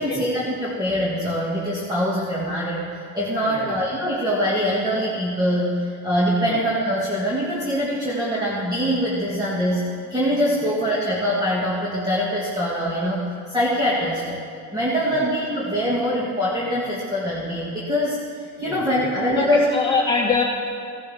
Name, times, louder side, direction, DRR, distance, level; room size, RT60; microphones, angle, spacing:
voice 1, 0.0-2.9 3.1-14.4 14.7-18.2 18.6-20.0, equal, 10° right, -7 dB, 2.1 m, -23 dB
voice 2, 3.4-3.8 6.4-6.6 10.6-10.7 15.1-15.2 18.6-20.4, left 5 dB, 15° left, -3 dB, 1.8 m, -25 dB
16.0 x 11.5 x 3.6 m, 2.5 s
cardioid pair, 145°, 35 cm